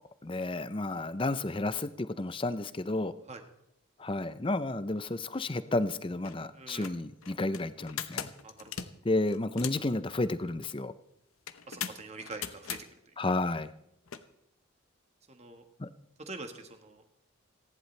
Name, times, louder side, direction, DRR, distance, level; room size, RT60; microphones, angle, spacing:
voice 1, 0.2-3.1 4.0-8.3 9.0-10.9 13.2-13.7 15.8-15.9, left 2 dB, 25° left, 13 dB, 0.6 m, -31 dB
sound 1, 5.7-5.8 6.1-6.4 6.7-9.9 11.5-12.8 14.1-14.2, left 8 dB, 85° left, 0.9 m, -39 dB
voice 2, 6.5-6.9 8.4-8.7 11.7-12.8 15.3-15.6 16.2-17.0, right 3 dB, 30° right, 6 dB, 1.5 m, -44 dB
29.5 x 11.0 x 3.3 m, 0.80 s
head